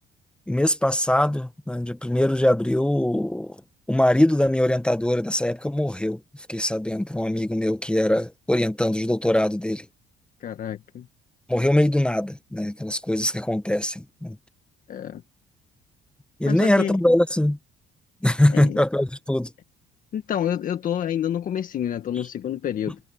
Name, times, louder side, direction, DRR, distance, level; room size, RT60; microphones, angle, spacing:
voice 1, 0.5-3.6 3.9-6.2 6.5-9.9 11.5-14.4 16.4-17.6 18.2-19.5, left 1 dB, 5° left, 1.1 m, -22 dB
voice 2, 10.4-11.1 14.9-15.2 16.5-17.0 18.5-18.8 20.1-23.0, left 9 dB, 55° left, 1.7 m, -28 dB
cardioid pair, 110°, 17 cm